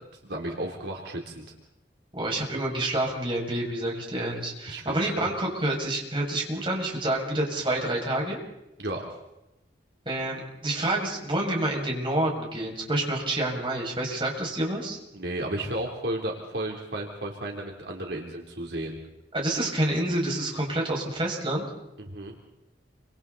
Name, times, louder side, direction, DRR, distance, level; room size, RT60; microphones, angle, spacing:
voice 1, 0.2-1.4 4.7-5.3 8.8-9.1 15.1-19.0 22.0-22.3, right 1 dB, 70° right, 0 dB, 3.6 m, -33 dB
voice 2, 2.1-8.4 10.0-15.0 19.3-21.7, right 1 dB, 30° right, -2 dB, 6.9 m, -28 dB
29.0 x 26.5 x 4.2 m, 0.92 s
head